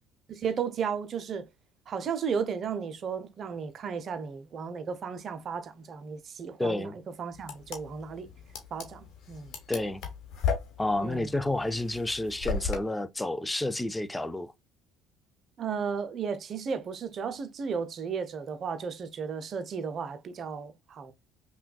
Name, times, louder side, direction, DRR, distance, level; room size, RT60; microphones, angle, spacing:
voice 1, 0.3-1.5 1.9-6.9 7.2-8.3 8.7-9.5 11.0-11.3 15.6-21.1, right 6 dB, 45° right, 0.6 m, -34 dB
voice 2, 6.6-7.0 9.7-10.0 10.8-14.5, left 2 dB, 10° left, 0.5 m, -30 dB
sound 1, 7.4-12.8, left 5 dB, 55° left, 1.0 m, -34 dB
5.5 x 2.3 x 2.3 m
figure-of-eight pair, 55°, 0 cm